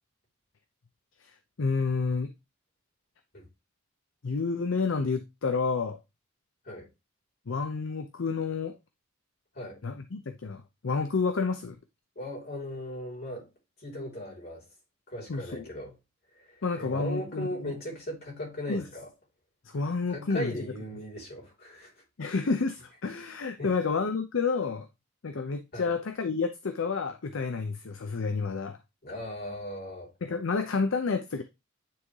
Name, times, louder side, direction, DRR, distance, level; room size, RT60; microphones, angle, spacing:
voice 1, 1.6-2.3 4.2-6.0 7.5-8.8 9.8-11.8 15.3-15.6 16.6-17.7 18.7-18.9 19.6-20.5 22.2-24.9 25.2-28.8 30.2-31.4, left 4 dB, 65° left, 0.6 m, -30 dB
voice 2, 12.2-13.5 13.8-14.7 15.1-16.0 16.3-19.1 20.1-21.9 23.6-23.7 25.7-25.9 29.0-30.1, left 1 dB, 50° left, 3.3 m, -38 dB
9.4 x 3.6 x 3.2 m
head